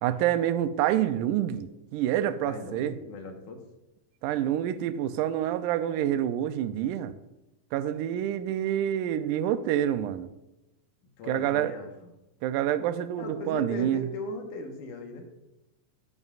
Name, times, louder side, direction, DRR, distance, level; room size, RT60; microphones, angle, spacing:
voice 1, 0.0-3.0 4.2-7.1 7.7-10.3 11.3-11.7 12.4-14.0, right 11 dB, 80° right, 2.0 m, -27 dB
voice 2, 2.4-3.6 11.2-12.1 13.2-15.3, left 2 dB, 70° left, 2.6 m, -38 dB
11.0 x 10.5 x 2.4 m
omnidirectional pair, 3.8 m